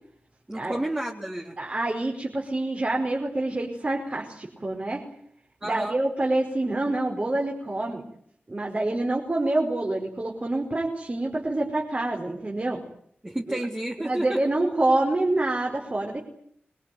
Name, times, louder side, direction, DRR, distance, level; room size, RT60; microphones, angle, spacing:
voice 1, 0.5-1.6 5.6-6.0 13.2-14.4, right 1 dB, 20° right, 0 dB, 3.4 m, -31 dB
voice 2, 1.6-5.0 5.6-8.0 8.5-12.8 13.5-13.6 14.0-16.3, right 2 dB, 35° right, 1 dB, 5.1 m, -27 dB
26.0 x 22.0 x 9.4 m, 0.69 s
wide cardioid pair, 95°, 4 cm